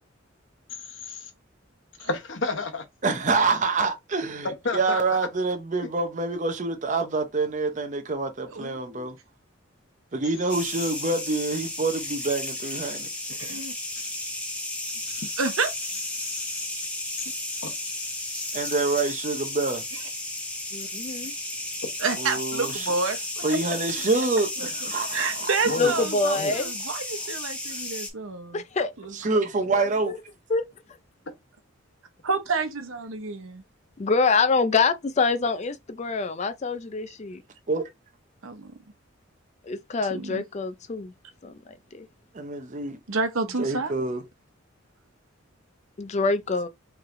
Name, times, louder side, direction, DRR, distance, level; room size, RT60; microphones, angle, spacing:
voice 1, 0.8-1.3 2.0-2.8 4.4-5.0 5.8-5.9 14.0-14.1 15.1-15.3 16.2-16.5 17.2-17.3 17.6-17.7 25.6-26.0 26.3-26.6, left 3 dB, 65° left, 1.0 m, -31 dB
voice 2, 3.0-4.5 4.7-9.2 10.1-13.1 18.5-19.8 22.2-22.9 23.4-25.5 29.1-30.1 37.7-37.8 42.3-43.0 43.6-44.2, right 3 dB, 35° right, 0.7 m, -26 dB
voice 3, 8.5-9.1 13.3-13.7 15.4-15.7 19.9-20.1 22.0-24.3 24.6-28.6 29.0-29.1 32.2-33.6 38.4-38.8 40.1-40.4 43.1-43.9, right 4 dB, 85° right, 0.9 m, -30 dB
sound 1, 10.5-28.1, left 1 dB, 5° left, 0.9 m, -33 dB
voice 4, 20.7-21.3 25.8-26.7 28.5-28.9 29.7-29.8 30.1-30.2 30.5-30.6 34.0-37.4 39.6-41.1 41.4-41.6 41.9-42.1 46.0-46.7, left 4 dB, 35° left, 0.4 m, -25 dB
4.6 x 3.2 x 2.6 m
head